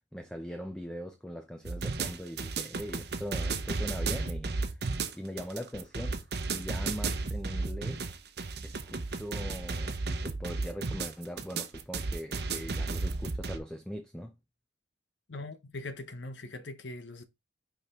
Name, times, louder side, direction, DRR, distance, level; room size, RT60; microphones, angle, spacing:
voice 1, 0.1-4.8 5.1-6.2 6.5-8.0 8.6-14.3, equal, 5° left, 0.6 m, -41 dB
sound 1, 1.6-13.6, right 3 dB, 60° right, 0.8 m, -33 dB
voice 2, 15.3-17.2, left 2 dB, 75° left, 0.9 m, -41 dB
5.4 x 5.0 x 3.6 m
head